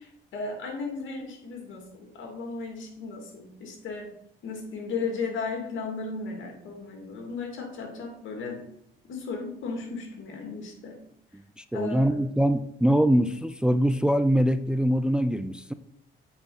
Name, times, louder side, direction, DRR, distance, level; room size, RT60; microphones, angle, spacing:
voice 1, 0.0-4.2 4.4-8.7 9.1-11.0 11.7-12.2, left 4 dB, 75° left, 2 dB, 2.4 m, -35 dB
voice 2, 11.6-15.7, equal, 5° right, 11 dB, 0.4 m, -23 dB
8.0 x 4.3 x 5.5 m, 0.74 s
cardioid pair, 90°, 20 cm